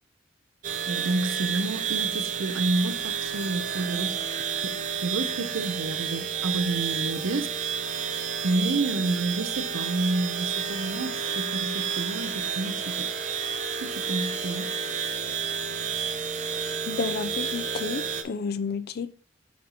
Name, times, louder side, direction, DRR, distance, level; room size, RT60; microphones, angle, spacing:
sound 1, 0.6-18.2, right 7 dB, 40° right, 0.6 m, -30 dB
voice 1, 0.9-4.2 4.5-7.5 8.4-13.1 13.8-14.7, right 2 dB, 85° right, 0.6 m, -29 dB
Applause / Crowd, 10.3-16.6, left 2 dB, 25° left, 1.0 m, -49 dB
voice 2, 16.9-19.1, left 5 dB, 55° left, 0.4 m, -31 dB
8.5 x 2.9 x 4.0 m
head